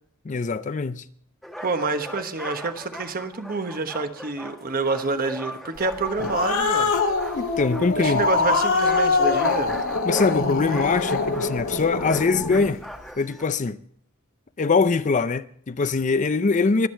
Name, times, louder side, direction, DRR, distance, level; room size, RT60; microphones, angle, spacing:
voice 1, 0.2-1.0 7.3-8.2 10.0-12.8 13.2-13.8 14.6-16.9, left 4 dB, 35° left, 0.5 m, -23 dB
sound 1, 1.4-13.4, equal, ahead, 1.1 m, -39 dB
voice 2, 1.6-7.0 8.0-9.8, right 3 dB, 45° right, 1.2 m, -28 dB
Growling, 5.9-12.7, left 4 dB, 80° left, 1.9 m, -24 dB
23.0 x 8.3 x 4.4 m
head